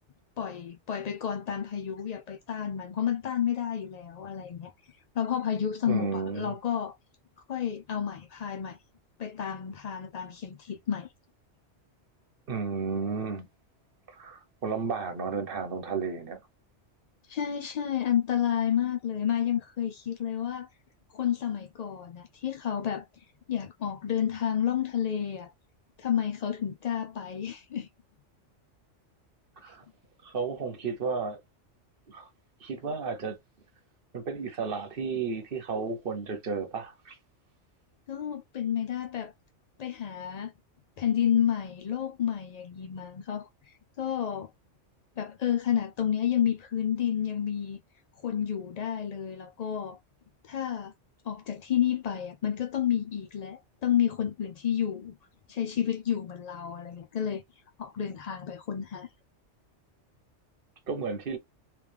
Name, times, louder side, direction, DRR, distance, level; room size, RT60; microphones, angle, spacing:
voice 1, 0.4-4.7 5.1-6.9 7.5-8.8 9.2-11.1 17.3-20.7 21.1-25.5 26.0-27.9 29.6-29.7 38.1-39.3 39.8-40.5 41.0-44.5 45.2-47.8 48.2-50.0 50.5-50.9 51.2-55.2 55.5-57.4 57.8-59.1, left 9 dB, 60° left, 0.4 m, -30 dB
voice 2, 5.9-6.5 12.5-13.5 14.1-16.4 29.6-29.8 30.2-31.4 32.1-32.3 32.6-33.4 34.1-37.2 60.9-61.4, right 5 dB, 55° right, 1.1 m, -33 dB
3.3 x 3.3 x 3.3 m
omnidirectional pair, 1.2 m